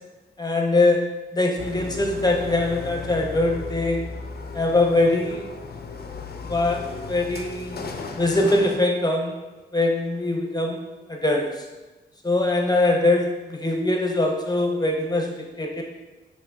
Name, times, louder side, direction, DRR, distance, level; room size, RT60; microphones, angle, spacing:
voice 1, 0.4-1.0 1.3-4.0 4.5-5.5 6.4-6.8 7.1-7.8 8.2-9.4 9.7-10.8 11.1-11.5 12.2-15.3 15.6-15.8, left 2 dB, 20° left, 1 dB, 0.7 m, -22 dB
sound 1, 1.6-8.8, left 4 dB, 55° left, 0.5 m, -35 dB
5.0 x 3.8 x 2.3 m, 1.2 s
cardioid pair, 70°, 19 cm